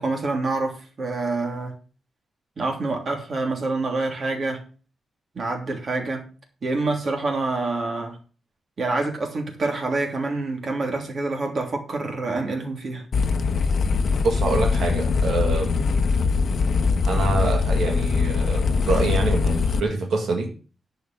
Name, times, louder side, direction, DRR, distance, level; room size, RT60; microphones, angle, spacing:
voice 1, 0.0-1.7 2.6-4.6 5.3-6.2 6.6-8.2 8.8-13.0, right 3 dB, 45° right, 3.1 m, -26 dB
sound 1, 13.1-19.8, left 5 dB, 55° left, 0.9 m, -22 dB
voice 2, 14.2-15.8 17.1-20.5, right 3 dB, 80° right, 2.1 m, -25 dB
11.0 x 5.5 x 7.4 m
wide cardioid pair, 140°, 0 cm